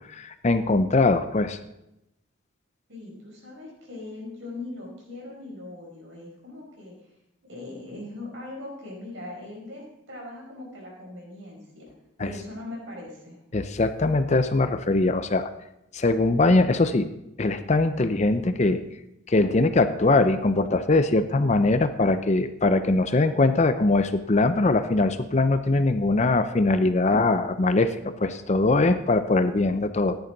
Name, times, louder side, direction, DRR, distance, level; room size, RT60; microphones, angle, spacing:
voice 1, 0.1-1.6 12.2-12.3 13.5-15.5 15.9-17.1 17.4-18.8 19.3-30.2, left 2 dB, 35° left, 10 dB, 0.6 m, -22 dB
voice 2, 2.9-6.9 7.5-11.9 12.2-13.4, left 2 dB, 65° right, -1 dB, 5.2 m, -40 dB
14.0 x 10.5 x 4.0 m, 0.87 s
head